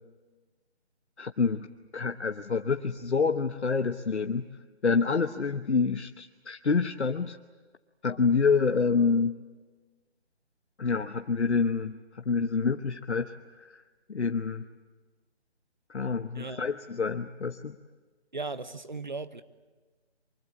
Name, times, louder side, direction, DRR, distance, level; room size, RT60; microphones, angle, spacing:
voice 1, 1.2-1.7 1.9-4.4 4.8-7.4 8.0-9.4 10.8-13.3 13.6-13.7 14.1-14.6 15.9-17.8, left 5 dB, 80° left, 6 dB, 1.1 m, -27 dB
voice 2, 16.3-16.6 18.3-19.4, right 3 dB, 45° right, 13 dB, 1.1 m, -37 dB
24.0 x 22.0 x 8.5 m, 1.3 s
figure-of-eight pair, 180°, 33 cm